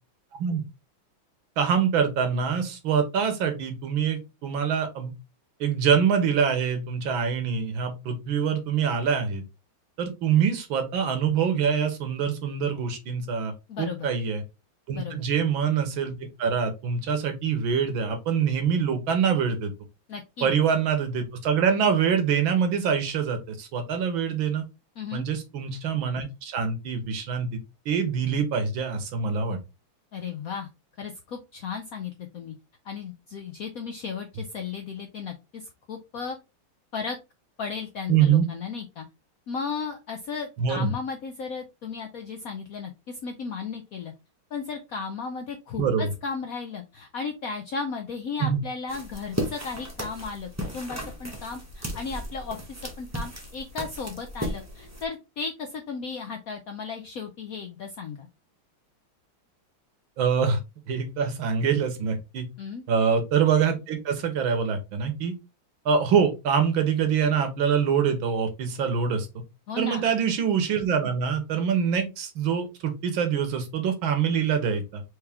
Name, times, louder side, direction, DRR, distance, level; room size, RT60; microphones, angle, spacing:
voice 1, 1.6-5.1 5.6-9.4 10.0-13.5 13.8-14.4 14.9-19.7 20.4-24.6 25.1-27.5 27.9-29.6 38.1-38.5 40.6-40.9 45.8-46.1 48.4-48.6 60.2-60.6 60.9-62.5 62.9-65.3 65.9-69.3 69.8-75.0, right 7 dB, 75° right, 1.7 m, -25 dB
voice 2, 13.7-14.1 14.9-15.3 20.1-20.5 25.0-25.3 30.1-30.7 31.0-32.5 32.8-36.4 36.9-37.2 37.6-39.1 39.5-44.1 44.5-58.3 62.6-62.8 69.7-70.1, left 5 dB, 75° left, 0.8 m, -35 dB
sound 1, 48.9-55.0, equal, 10° right, 0.8 m, -35 dB
4.7 x 3.1 x 3.5 m
omnidirectional pair, 2.2 m